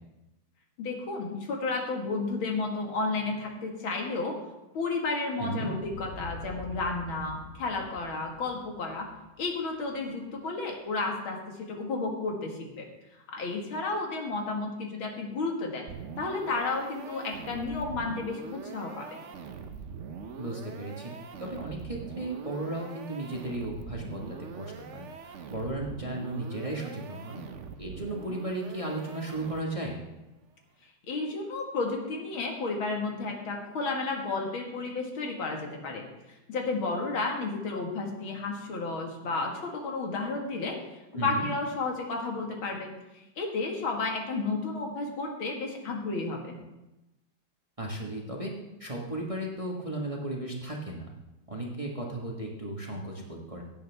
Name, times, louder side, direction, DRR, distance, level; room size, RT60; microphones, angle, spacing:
voice 1, 0.8-4.3 4.7-9.1 9.4-11.4 11.7-12.9 13.3-15.9 16.2-19.2 31.1-36.0 36.5-40.8 41.1-46.6, left 3 dB, 85° left, 1 dB, 2.6 m, -32 dB
voice 2, 5.4-5.8 20.4-21.1 21.4-25.1 25.5-27.4 27.8-30.0 41.1-41.5 47.8-48.5 48.8-51.2 51.5-53.6, right 1 dB, 20° right, -2 dB, 1.3 m, -35 dB
sound 1, 5.7-10.3, left 3 dB, 65° left, 4.2 m, -46 dB
sound 2, 15.9-29.9, right 5 dB, 65° right, 0.7 m, -43 dB
17.0 x 9.0 x 3.5 m, 0.98 s
omnidirectional pair, 2.2 m